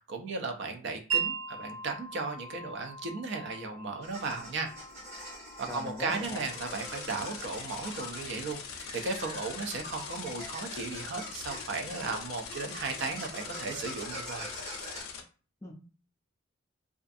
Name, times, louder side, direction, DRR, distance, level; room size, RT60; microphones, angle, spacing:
voice 1, 0.1-4.7 5.1-5.2 5.6-14.5, right 4 dB, 55° right, 5 dB, 0.4 m, -36 dB
Wind chime, 1.1-8.7, right 7 dB, 75° right, 1.2 m, -40 dB
sound 1, 4.0-15.0, equal, 30° right, 1.1 m, -45 dB
voice 2, 5.7-6.4 15.6-15.7, left 2 dB, 15° left, 1 dB, 0.4 m, -40 dB
sound 2, 6.2-15.2, left 6 dB, 90° left, 0.5 m, -42 dB
2.4 x 2.3 x 2.5 m, 0.37 s
head